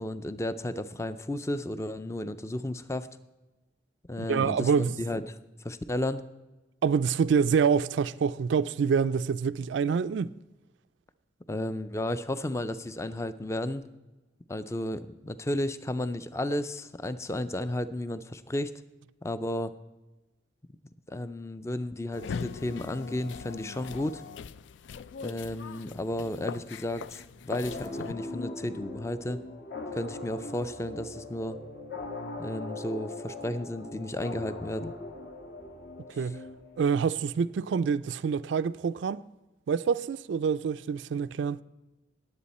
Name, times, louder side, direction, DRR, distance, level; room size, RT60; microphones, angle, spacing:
voice 1, 0.0-3.1 4.1-6.2 11.5-13.8 14.5-18.7 19.2-19.7 21.1-24.2 25.2-29.4 29.9-31.6 32.4-34.9 36.2-36.3, left 1 dB, 15° left, 0.4 m, -33 dB
voice 2, 4.3-5.0 6.8-10.3 36.2-36.4 36.8-39.2 39.7-41.6, right 6 dB, 75° right, 0.3 m, -26 dB
sound 1, 22.1-28.1, left 6 dB, 80° left, 0.4 m, -41 dB
sound 2, 27.6-37.1, left 2 dB, 60° left, 1.6 m, -40 dB
19.0 x 7.8 x 4.2 m
head